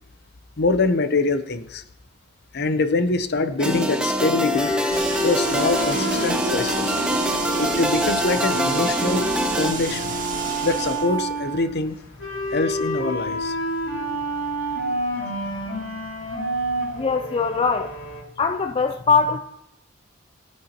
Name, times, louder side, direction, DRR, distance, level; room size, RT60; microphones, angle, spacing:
voice 1, 0.6-1.8 2.5-4.8 5.2-6.9 7.6-9.3 9.6-10.1 10.6-12.0 12.5-13.6, left 3 dB, 55° left, 10 dB, 0.8 m, -24 dB
sound 1, 3.6-9.7, equal, 5° right, 0.8 m, -25 dB
sound 2, 4.5-18.2, right 2 dB, 85° left, 2.9 m, -29 dB
sound 3, 4.9-11.1, right 2 dB, 40° right, 2.0 m, -31 dB
voice 2, 17.0-17.9 18.4-19.4, left 5 dB, 30° left, 7 dB, 0.4 m, -21 dB
17.5 x 8.6 x 3.0 m, 0.79 s
head